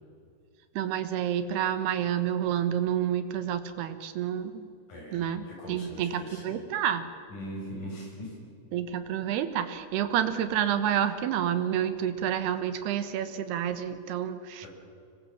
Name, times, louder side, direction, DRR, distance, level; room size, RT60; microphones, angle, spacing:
voice 1, 0.7-4.7 5.1-7.1 8.7-14.7, right 10 dB, 75° right, 10 dB, 3.3 m, -29 dB
voice 2, 4.9-6.6 7.3-8.5 14.6-14.7, equal, 50° left, -1 dB, 7.9 m, -41 dB
25.5 x 22.0 x 7.5 m, 2.5 s
omnidirectional pair, 4.8 m